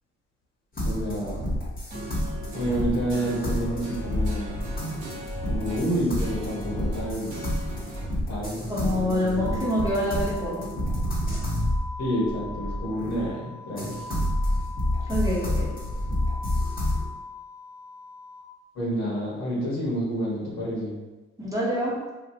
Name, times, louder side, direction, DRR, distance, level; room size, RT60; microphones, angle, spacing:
voice 1, 0.8-1.5 2.5-4.6 5.5-7.4 8.3-9.7 12.0-13.9 18.7-21.0, equal, 60° left, -6 dB, 1.4 m, -29 dB
sound 1, 0.8-13.3 13.8-17.0, left 1 dB, 30° left, 1.3 m, -29 dB
sound 2, 1.9-8.1, right 1 dB, 75° right, 1.0 m, -41 dB
voice 2, 8.7-10.6 15.1-15.7 21.4-21.9, equal, 10° right, -7 dB, 1.0 m, -26 dB
sound 3, 9.4-18.4, left 3 dB, 80° left, 0.9 m, -42 dB
3.0 x 2.8 x 2.8 m, 1.2 s
cardioid pair, 90°, 30 cm